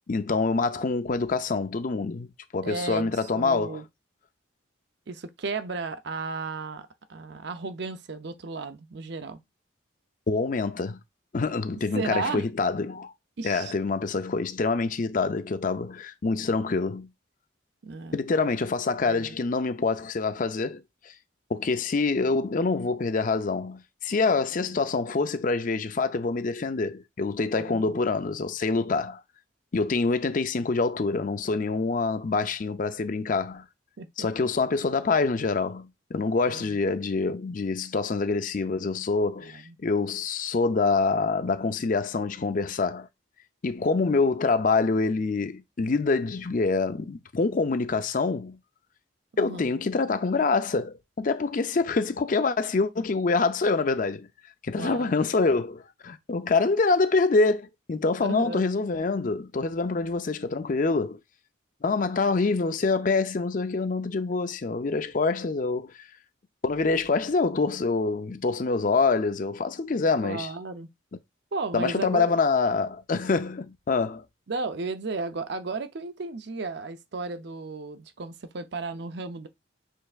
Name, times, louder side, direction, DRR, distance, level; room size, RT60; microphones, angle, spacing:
voice 1, 0.1-3.8 10.3-11.0 11.3-13.1 13.4-17.1 18.1-21.1 21.5-29.2 29.7-33.6 34.2-43.1 43.6-48.6 49.4-54.3 54.6-61.2 61.8-65.9 66.6-70.5 71.7-74.2, left 4 dB, 40° left, 0.5 m, -26 dB
voice 2, 2.6-3.8 5.1-9.4 11.9-12.5 13.4-13.7 17.8-18.2 19.1-19.3 27.5-28.0 34.0-34.3 36.4-36.8 39.4-39.8 49.3-49.8 54.8-55.2 58.2-58.6 70.2-70.9 71.5-72.3 74.5-79.5, right 3 dB, 55° right, 0.5 m, -34 dB
6.5 x 3.3 x 2.4 m
head